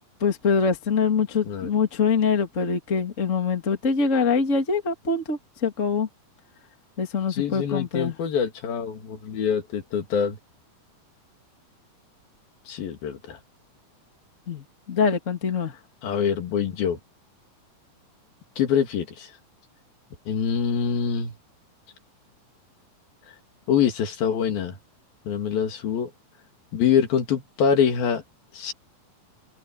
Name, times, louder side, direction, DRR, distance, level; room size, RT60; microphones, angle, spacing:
voice 1, 0.2-6.1 7.0-8.1 14.5-15.7, left 5 dB, 25° left, 2.4 m, -24 dB
voice 2, 7.3-10.4 12.7-13.4 16.0-17.0 18.6-19.3 20.3-21.3 23.7-24.8 25.3-26.1 26.7-28.2 28.5-28.7, left 7 dB, 85° left, 4.3 m, -25 dB
omnidirectional pair, 4.1 m